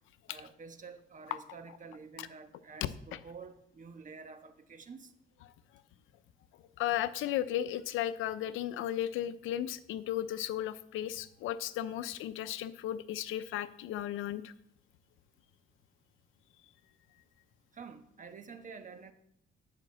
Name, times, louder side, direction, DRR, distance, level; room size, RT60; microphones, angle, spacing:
voice 1, 0.3-5.1 17.7-19.1, right 5 dB, 40° right, 8 dB, 1.2 m, -49 dB
voice 2, 6.8-14.5, left 12 dB, 90° left, 14 dB, 0.6 m, -35 dB
10.5 x 5.1 x 7.4 m, 0.74 s
cardioid pair, 90°, 20 cm